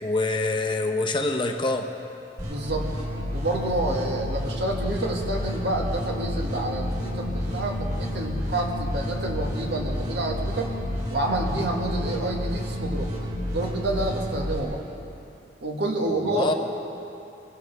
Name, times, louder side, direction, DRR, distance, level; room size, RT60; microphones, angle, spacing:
voice 1, 0.0-1.9 16.0-16.5, left 2 dB, 25° left, 5 dB, 0.8 m, -25 dB
sound 1, 2.4-14.6, left 1 dB, 40° right, 4.2 m, -30 dB
voice 2, 2.4-2.9 3.3-10.7 11.1-13.1 13.5-14.8 15.6-16.5, right 2 dB, 75° right, 0 dB, 1.9 m, -28 dB
24.0 x 16.0 x 3.5 m, 2.8 s
head